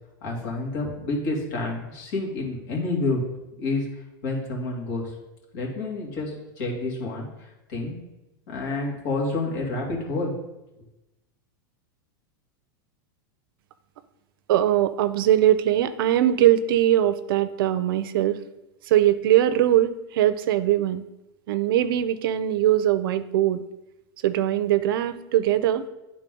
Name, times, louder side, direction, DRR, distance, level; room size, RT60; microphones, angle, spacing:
voice 1, 0.2-3.2 3.6-3.9 4.2-5.1 5.5-7.9 8.5-10.3, left 2 dB, 65° left, -2 dB, 2.4 m, -29 dB
voice 2, 14.5-18.4 18.9-21.0 21.5-23.6 24.2-25.8, right 12 dB, 70° right, 12 dB, 0.5 m, -21 dB
9.7 x 4.0 x 3.8 m, 0.98 s
supercardioid pair, 135°, 12 cm